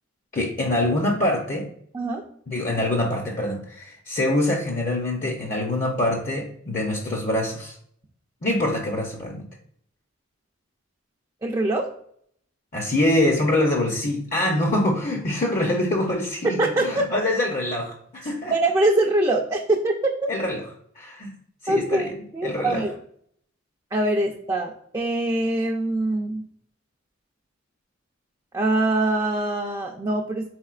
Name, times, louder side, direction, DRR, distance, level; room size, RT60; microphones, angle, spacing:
voice 1, 0.3-1.7 2.5-7.7 8.4-9.4 12.7-18.5 20.3-20.6 21.0-21.3 21.6-22.1 22.4-22.8, left 1 dB, 40° left, 1 dB, 0.6 m, -24 dB
voice 2, 11.4-11.9 16.4-16.8 18.5-19.9 21.7-22.9 23.9-26.4 28.5-30.4, right 2 dB, 20° right, -1 dB, 0.4 m, -23 dB
4.3 x 4.2 x 2.4 m, 0.65 s
head